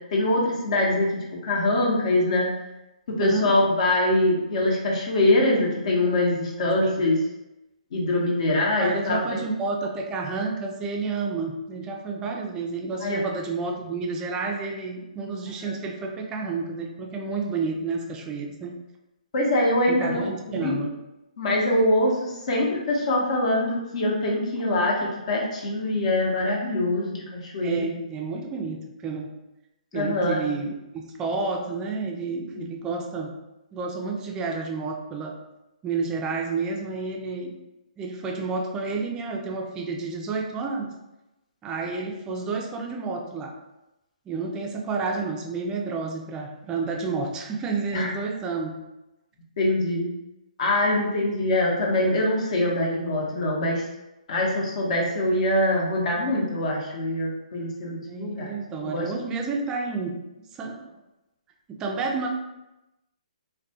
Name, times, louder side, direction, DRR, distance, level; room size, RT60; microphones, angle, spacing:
voice 1, 0.1-1.1 1.4-2.5 3.2-7.2 7.9-9.4 13.0-13.2 15.6-15.7 19.3-20.8 21.4-24.9 25.3-27.9 29.9-30.4 32.5-32.7 47.9-48.1 49.6-50.1 50.6-53.8 54.3-58.5 58.8-59.1, left 1 dB, 55° left, -3 dB, 0.7 m, -23 dB
voice 2, 3.2-3.5 6.8-7.0 8.8-18.7 19.9-20.9 27.6-29.3 29.9-30.7 31.2-33.3 33.7-35.3 35.8-37.5 38.0-40.9 41.6-43.5 44.3-48.8 58.1-60.1 60.5-60.8 61.7-62.3, right 4 dB, 15° right, 1 dB, 0.3 m, -30 dB
2.3 x 2.2 x 2.7 m, 0.96 s
hypercardioid pair, 145°, 4 cm